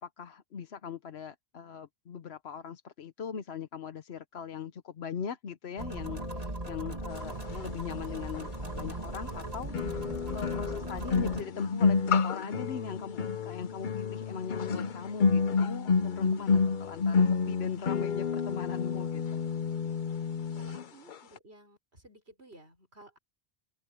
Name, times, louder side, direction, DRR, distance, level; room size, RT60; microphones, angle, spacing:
voice 1, 0.0-10.1 10.3-19.4, left 7 dB, 75° left, 1.1 m, -40 dB
sound 1, 5.8-11.4, right 1 dB, 35° right, 2.8 m, -38 dB
sound 2, 8.3-8.4 9.7-20.8 21.1-21.4, left 5 dB, 50° left, 0.8 m, -29 dB
voice 2, 20.6-23.2, right 2 dB, 75° right, 6.8 m, -55 dB
omnidirectional pair, 1.1 m